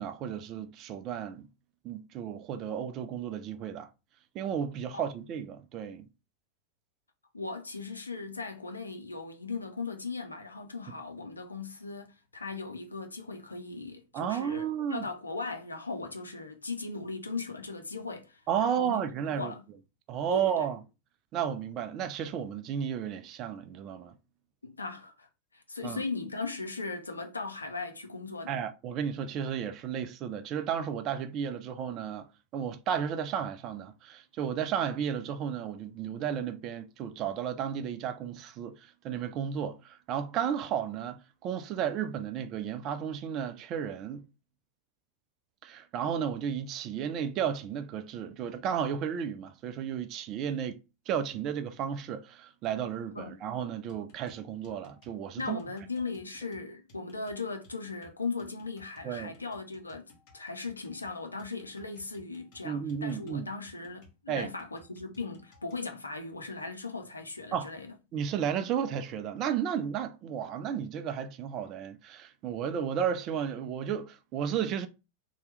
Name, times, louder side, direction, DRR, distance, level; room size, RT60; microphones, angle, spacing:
voice 1, 0.0-1.5 1.8-3.9 4.3-6.1 14.1-15.1 18.5-19.5 20.1-20.8 21.3-24.1 25.8-26.0 28.5-32.3 32.5-44.3 45.6-50.8 51.1-55.6 59.0-59.4 62.6-63.5 64.3-64.5 67.5-67.7 68.1-74.9, right 8 dB, 35° right, 0.4 m, -33 dB
voice 2, 7.3-19.6 20.3-20.7 24.6-28.6 53.2-53.3 55.4-67.9, left 4 dB, 80° left, 0.5 m, -38 dB
sound 1, 53.9-65.9, left 2 dB, 45° left, 1.3 m, -59 dB
2.8 x 2.2 x 3.2 m
figure-of-eight pair, 90°, 0 cm